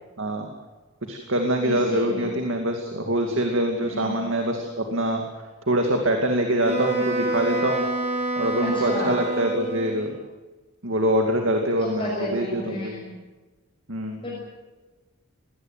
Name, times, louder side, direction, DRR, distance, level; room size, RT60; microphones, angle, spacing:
voice 1, 0.2-0.5 1.1-5.2 5.7-7.9 8.4-10.1 10.8-12.9 13.9-14.2, right 1 dB, 65° right, 3 dB, 2.4 m, -24 dB
voice 2, 1.6-2.4 3.8-4.2 8.6-9.1 11.8-13.2 14.2-14.4, left 1 dB, 25° left, -4 dB, 6.5 m, -32 dB
Wind instrument woodwind instrument, 6.6-10.2, right 1 dB, 30° right, 4.5 m, -27 dB
21.5 x 18.5 x 9.2 m, 1.2 s
head